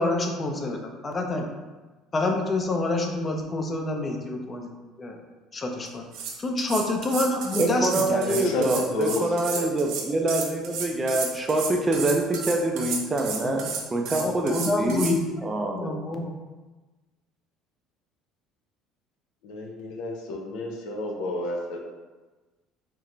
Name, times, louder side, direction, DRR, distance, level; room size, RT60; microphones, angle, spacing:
voice 1, 0.0-1.5 2.1-4.7 5.0-5.2 5.5-6.1 6.4-8.5 13.4-13.7 14.2-15.4 15.7-16.3, left 2 dB, 30° left, 3 dB, 0.7 m, -27 dB
sound 1, 5.9-6.0 6.1-15.2, right 6 dB, 70° right, 0.7 m, -32 dB
voice 2, 7.6-15.1 15.4-15.9, right 2 dB, 25° right, 2 dB, 0.6 m, -25 dB
voice 3, 8.2-9.7 19.4-21.9, left 2 dB, 75° left, 1 dB, 0.6 m, -31 dB
4.6 x 2.1 x 3.8 m, 1.2 s
supercardioid pair, 85°, 0 cm